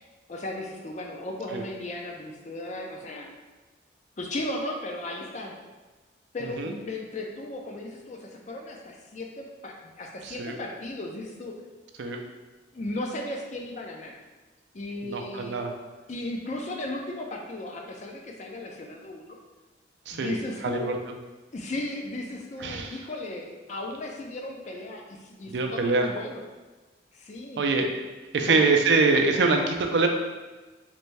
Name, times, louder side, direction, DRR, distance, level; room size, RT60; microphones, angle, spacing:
voice 1, 0.3-3.3 4.2-5.5 6.3-11.5 12.7-14.2 14.7-15.6 16.1-19.4 20.1-20.9 21.5-26.4 27.1-27.6 28.4-28.7, left 1 dB, 40° left, 1 dB, 0.4 m, -36 dB
voice 2, 10.2-10.5 12.0-12.2 15.0-15.7 20.1-20.3 20.6-21.0 22.6-23.0 25.5-26.1 27.6-27.9 28.3-30.1, right 3 dB, 65° right, 3 dB, 0.4 m, -24 dB
3.3 x 2.6 x 3.2 m, 1.2 s
head